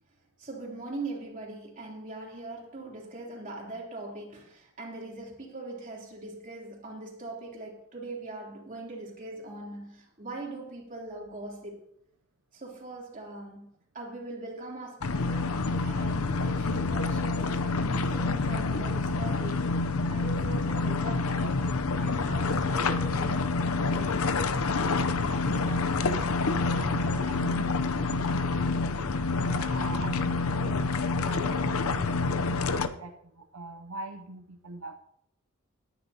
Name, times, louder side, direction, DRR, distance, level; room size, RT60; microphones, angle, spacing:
voice 1, 0.4-11.8 12.5-13.7 13.9-15.6 15.8-19.6 20.1-21.6 21.9-23.5, right 2 dB, 40° right, 3.3 m, -41 dB
sound 1, 15.0-32.9, left 3 dB, 85° left, 0.7 m, -27 dB
voice 2, 24.8-25.9 26.4-28.8 29.4-30.8 31.2-32.7 33.0-35.0, right 2 dB, 75° right, 0.8 m, -43 dB
19.5 x 10.0 x 2.9 m
head